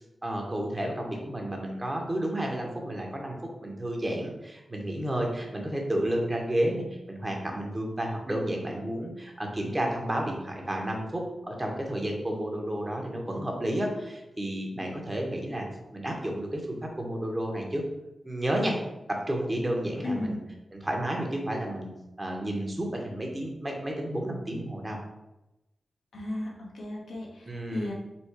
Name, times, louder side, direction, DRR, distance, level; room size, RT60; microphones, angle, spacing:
voice 1, 0.2-15.6 15.9-17.8 18.2-18.8 19.1-20.4 20.7-21.9 22.2-25.0 27.5-27.9, right 1 dB, 25° right, 1 dB, 1.1 m, -31 dB
voice 2, 20.0-20.4 26.1-27.9, left 1 dB, 85° left, -3 dB, 1.2 m, -35 dB
4.2 x 2.3 x 4.6 m, 0.95 s
cardioid pair, 50°, 0 cm